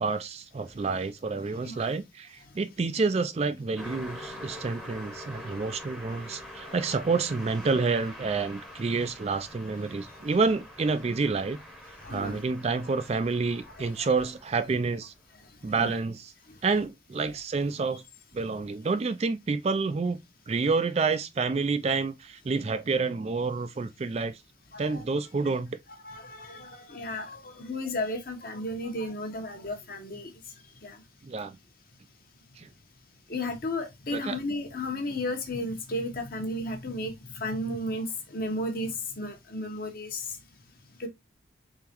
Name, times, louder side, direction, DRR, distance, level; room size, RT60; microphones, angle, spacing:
voice 1, 0.0-11.6 12.1-15.1 15.6-16.3 16.6-18.0 18.3-20.2 20.5-24.4 24.8-25.8 31.2-31.6 32.6-32.7 34.1-34.4, right 4 dB, 35° right, 0.3 m, -28 dB
Car passing by, 3.8-15.2, left 1 dB, ahead, 0.8 m, -45 dB
voice 2, 12.0-12.4 14.0-14.1 15.8-15.9 24.7-25.0 26.0-30.3 30.8-31.0 33.3-40.4 41.0-41.1, left 1 dB, 50° left, 1.1 m, -34 dB
3.9 x 3.8 x 2.9 m
head